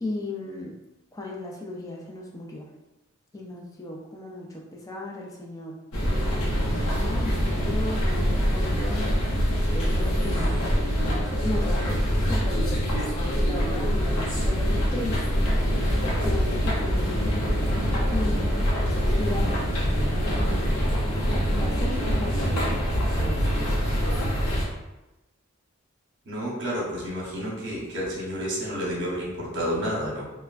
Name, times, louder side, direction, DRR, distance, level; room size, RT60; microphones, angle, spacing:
voice 1, 0.0-0.7 1.1-2.7 3.3-5.7 6.1-9.1 9.7-10.7 11.2-20.8 21.2-23.9, left 2 dB, 15° left, -1 dB, 0.3 m, -36 dB
sound 1, 5.9-24.6, equal, 80° left, 0.7 m, -24 dB
voice 2, 26.3-30.3, equal, 60° right, -4 dB, 0.9 m, -30 dB
3.3 x 2.1 x 2.4 m, 1.0 s
head